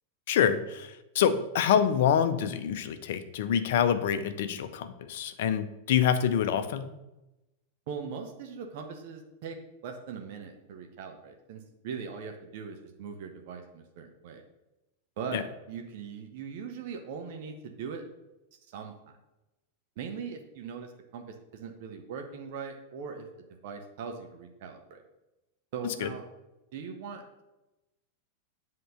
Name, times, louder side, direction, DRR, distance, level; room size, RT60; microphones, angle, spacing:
voice 1, 0.3-6.9 15.3-15.4 25.8-26.1, left 8 dB, 55° left, 11 dB, 0.6 m, -26 dB
voice 2, 7.9-9.6 9.8-14.4 15.2-18.0 18.7-18.9 20.0-23.3 23.6-25.0 25.7-26.2 26.7-27.4, right 6 dB, 50° right, 4 dB, 0.8 m, -40 dB
7.7 x 3.8 x 6.4 m, 0.98 s
figure-of-eight pair, 90°, 0 cm